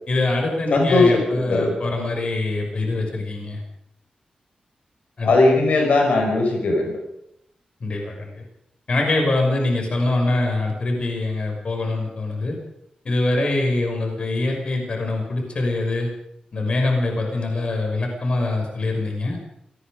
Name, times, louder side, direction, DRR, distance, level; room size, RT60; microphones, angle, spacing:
voice 1, 0.1-3.6 5.2-5.3 7.8-8.4 8.9-12.6 13.0-16.1 16.5-19.4, left 2 dB, 45° left, 2 dB, 6.0 m, -24 dB
voice 2, 0.7-1.7 5.2-7.0, left 2 dB, 75° left, 2 dB, 5.2 m, -18 dB
27.0 x 19.0 x 5.2 m, 0.77 s
wide cardioid pair, 165°, 3 cm